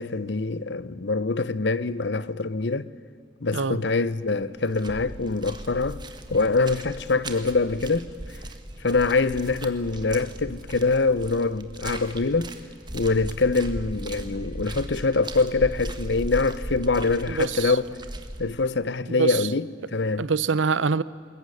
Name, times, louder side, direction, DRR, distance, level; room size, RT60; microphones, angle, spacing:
voice 1, 0.0-2.9 3.4-6.0 6.3-8.1 8.8-12.5 12.9-18.0 18.4-20.3, left 3 dB, 65° left, 0.8 m, -24 dB
sound 1, 3.9-4.1 4.4-18.4, right 1 dB, 25° right, 1.6 m, -37 dB
voice 2, 17.3-17.7 19.2-19.4 20.2-21.0, right 5 dB, 90° right, 0.7 m, -24 dB
21.5 x 21.0 x 9.9 m
head